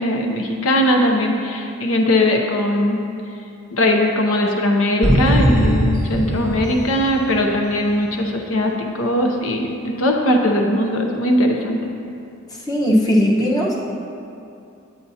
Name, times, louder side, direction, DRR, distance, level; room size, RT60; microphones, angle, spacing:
voice 1, 0.0-3.0 3.7-11.8, left 1 dB, 75° left, 2 dB, 0.7 m, -19 dB
sound 1, 5.0-7.8, right 1 dB, 15° right, 1.0 m, -20 dB
voice 2, 12.7-13.9, equal, 20° left, -4 dB, 1.0 m, -18 dB
9.2 x 8.8 x 2.8 m, 2.6 s
head